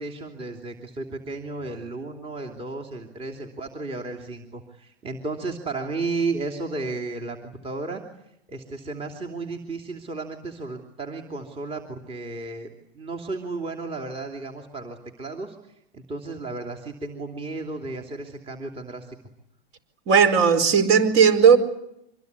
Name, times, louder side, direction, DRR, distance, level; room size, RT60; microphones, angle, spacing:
voice 1, 0.0-8.0 8.5-12.7 12.9-15.6 15.9-19.2, right 3 dB, 20° right, 2 dB, 2.9 m, -33 dB
voice 2, 20.1-21.6, right 6 dB, 45° right, 13 dB, 4.7 m, -16 dB
25.5 x 21.5 x 9.6 m, 0.77 s
hypercardioid pair, 125°, 31 cm